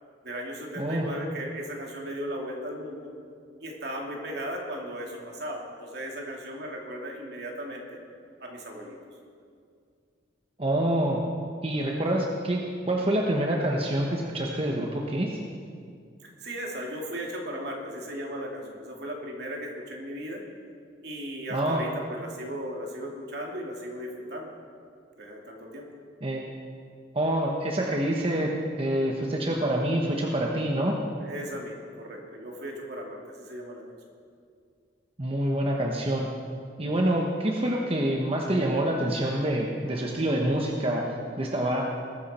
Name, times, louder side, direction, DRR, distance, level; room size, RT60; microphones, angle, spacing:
voice 1, 0.2-3.1 3.6-8.0 8.4-9.0 16.2-20.4 21.0-24.5 25.2-25.9 31.2-33.8, equal, 60° right, 0 dB, 2.7 m, -36 dB
voice 2, 0.8-1.1 10.6-11.2 11.6-15.4 21.5-21.8 26.2-26.4 27.1-28.5 28.8-31.0 35.2-36.3 36.8-41.8, right 1 dB, 30° right, -1 dB, 1.2 m, -26 dB
21.0 x 13.0 x 4.3 m, 2.3 s
head